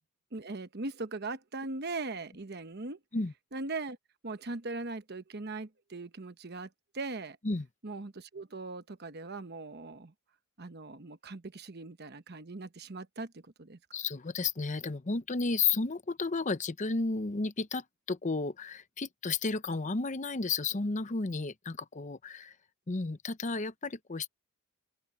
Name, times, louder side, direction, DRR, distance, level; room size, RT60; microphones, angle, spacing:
voice 1, 0.3-3.0 3.5-4.0 4.2-7.4 7.8-10.1 10.6-13.8, right 3 dB, 50° right, 1.0 m, -40 dB
voice 2, 13.9-22.5 22.9-24.3, left 4 dB, 35° left, 0.7 m, -32 dB
head